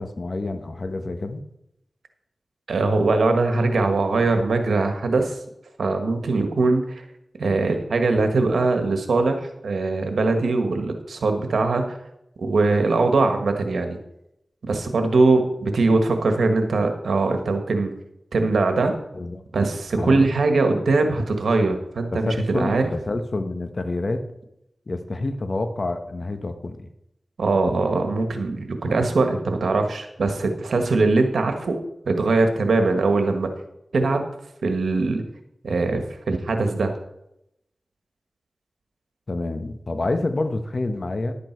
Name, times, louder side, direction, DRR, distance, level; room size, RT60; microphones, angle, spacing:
voice 1, 0.0-1.4 19.1-19.4 20.0-20.2 22.1-24.3 24.9-26.9 39.3-41.4, left 2 dB, 55° left, 8 dB, 1.4 m, -28 dB
voice 2, 2.7-5.4 5.8-7.0 7.4-11.8 12.4-14.0 14.6-17.9 18.3-18.9 19.5-22.9 27.4-31.7 32.0-33.5 33.9-34.3 34.6-35.2 35.6-36.9, right 3 dB, 90° right, 6 dB, 1.5 m, -21 dB
11.5 x 8.7 x 4.6 m, 0.81 s
cardioid pair, 40°, 0 cm